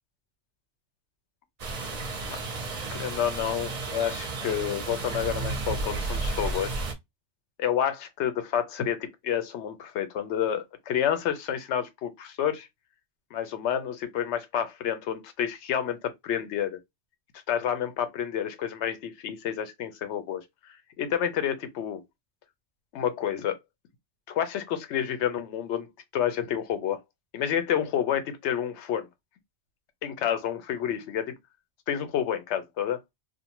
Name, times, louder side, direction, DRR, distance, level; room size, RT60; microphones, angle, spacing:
sound 1, 1.6-6.9, right 3 dB, 45° right, 0.6 m, -32 dB
voice 1, 2.9-6.8 7.6-12.7 13.3-16.8 17.5-20.4 21.0-22.0 22.9-23.6 24.3-25.9 26.1-27.0 27.3-29.1 30.0-31.4 31.9-33.0, left 9 dB, 80° left, 0.9 m, -29 dB
2.5 x 2.2 x 2.9 m
omnidirectional pair, 1.2 m